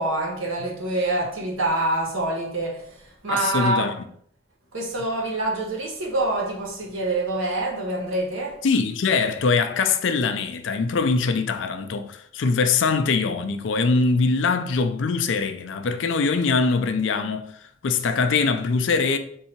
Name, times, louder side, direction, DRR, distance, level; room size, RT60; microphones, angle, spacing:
voice 1, 0.0-3.0 3.2-3.9 4.7-8.6, right 2 dB, 85° right, 1.1 m, -26 dB
voice 2, 3.3-3.9 8.6-17.5 17.8-19.2, left 4 dB, 65° left, 0.4 m, -22 dB
3.7 x 2.7 x 4.4 m
head